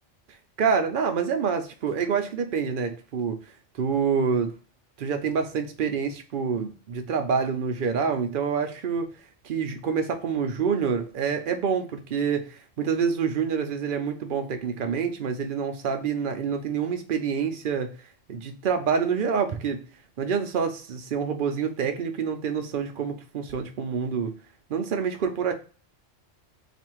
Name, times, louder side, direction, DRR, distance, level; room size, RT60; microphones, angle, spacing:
voice 1, 0.6-3.4 3.8-4.5 5.0-9.1 9.4-17.9 18.3-19.8 20.2-24.3 24.7-25.5, right 6 dB, 55° right, 6 dB, 0.7 m, -27 dB
3.4 x 2.4 x 4.4 m, 0.37 s
omnidirectional pair, 1.3 m